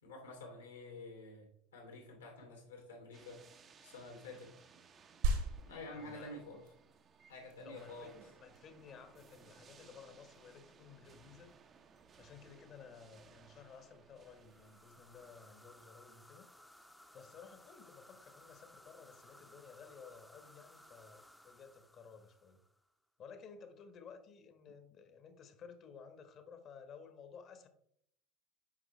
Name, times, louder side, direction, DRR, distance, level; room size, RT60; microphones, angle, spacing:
voice 1, 0.0-1.4 1.7-3.4 3.8-4.5 5.7-6.6 7.3-8.2, left 2 dB, 80° left, 2 dB, 2.5 m, -49 dB
sound 1, 3.1-15.8, right 6 dB, 35° right, 0.7 m, -62 dB
sound 2, 5.2-15.2, right 3 dB, 65° right, 1.7 m, -43 dB
voice 2, 5.9-6.3 7.6-11.5 12.2-16.5 17.1-22.6 23.2-27.7, left 6 dB, 40° left, 8 dB, 1.2 m, -55 dB
sound 3, 14.3-22.9, left 1 dB, 5° left, 0.7 m, -61 dB
8.6 x 5.4 x 3.2 m, 0.71 s
figure-of-eight pair, 70°, 0 cm